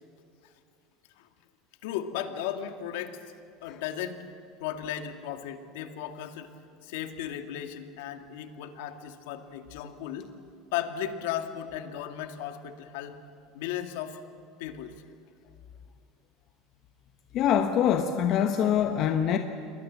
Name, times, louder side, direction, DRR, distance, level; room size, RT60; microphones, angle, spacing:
voice 1, 1.8-3.2 3.6-4.2 4.6-6.5 6.8-10.3 10.7-13.2 13.5-14.2 14.6-14.9, left 10 dB, 80° left, 7 dB, 2.1 m, -35 dB
voice 2, 17.3-19.4, left 9 dB, 50° left, 6 dB, 1.2 m, -24 dB
28.0 x 21.5 x 7.5 m, 2.4 s
supercardioid pair, 115°, 0 cm